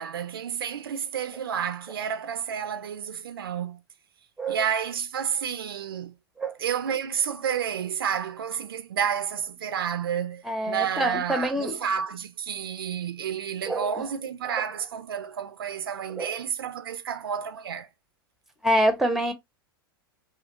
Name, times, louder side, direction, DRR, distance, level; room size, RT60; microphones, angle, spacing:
voice 1, 0.0-3.8 4.5-6.1 6.6-17.9, right 8 dB, 70° right, 0.5 m, -30 dB
voice 2, 10.5-11.8 13.7-13.9 16.2-16.3 18.6-19.3, right 1 dB, 5° right, 0.7 m, -25 dB
2.9 x 2.5 x 2.8 m
figure-of-eight pair, 95°, 13 cm